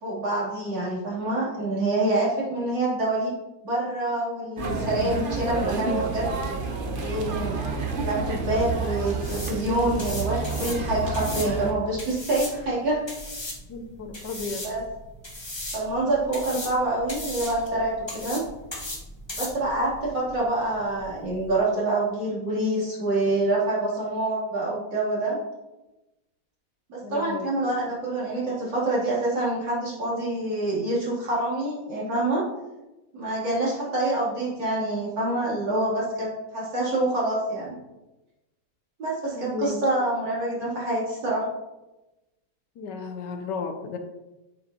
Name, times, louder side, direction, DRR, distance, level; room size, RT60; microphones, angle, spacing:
voice 1, 0.0-3.4 3.6-6.3 7.0-7.6 8.0-13.0 14.6-14.8 15.7-18.4 19.4-25.4 26.9-32.4 33.1-37.8 39.0-41.5, right 2 dB, 85° right, -7 dB, 3.9 m, -26 dB
sound 1, 4.6-11.7, right 3 dB, 40° right, 0.8 m, -29 dB
sound 2, 8.3-21.6, left 1 dB, 15° left, 1.2 m, -38 dB
voice 2, 13.7-14.7 27.0-27.5 39.3-39.8 42.8-44.0, left 4 dB, 75° left, 6 dB, 1.5 m, -34 dB
9.1 x 7.3 x 2.9 m, 1.0 s
omnidirectional pair, 1.9 m